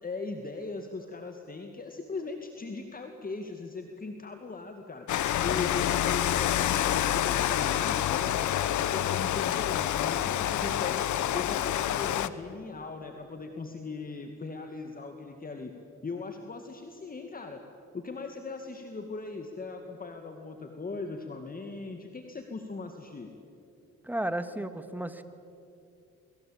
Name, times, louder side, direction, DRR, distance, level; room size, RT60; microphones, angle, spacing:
voice 1, 0.0-5.1 5.4-11.1 11.3-15.7 16.0-17.6 17.9-23.3, left 3 dB, 30° left, 4 dB, 2.2 m, -39 dB
Rain, 5.1-12.3, left 11 dB, 75° left, 1.1 m, -27 dB
voice 2, 24.0-25.2, right 1 dB, 5° right, 10 dB, 1.9 m, -33 dB
29.5 x 22.5 x 8.8 m, 2.6 s
cardioid pair, 90°, 30 cm